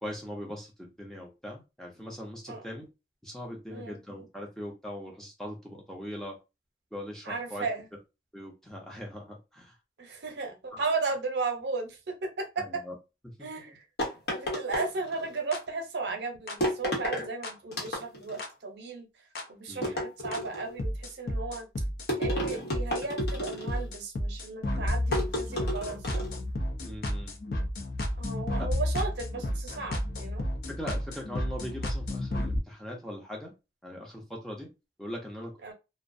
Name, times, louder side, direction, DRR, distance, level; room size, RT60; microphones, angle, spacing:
voice 1, 0.0-2.9 3.2-6.4 6.9-7.7 8.3-9.8 10.7-10.8 12.6-13.0 13.2-13.3 19.7-20.0 26.8-27.4 30.7-33.5 33.8-34.7 35.0-35.7, equal, 5° left, 0.5 m, -40 dB
voice 2, 2.5-2.8 3.7-4.0 7.3-7.9 10.0-12.8 13.4-13.8 14.3-21.7 22.2-26.2 28.2-30.5 35.6-35.7, right 4 dB, 75° right, 0.7 m, -35 dB
sound 1, 14.0-15.4 16.6-17.3 17.7-18.4 19.8-20.7 22.1-23.9 25.1-26.4, equal, 70° left, 0.9 m, -32 dB
sound 2, 15.5-15.6 16.5-16.6 17.4-17.5 18.4-18.5 19.4-19.5 20.3-20.4 20.8-32.6, left 1 dB, 55° left, 0.4 m, -32 dB
2.4 x 2.1 x 2.5 m
head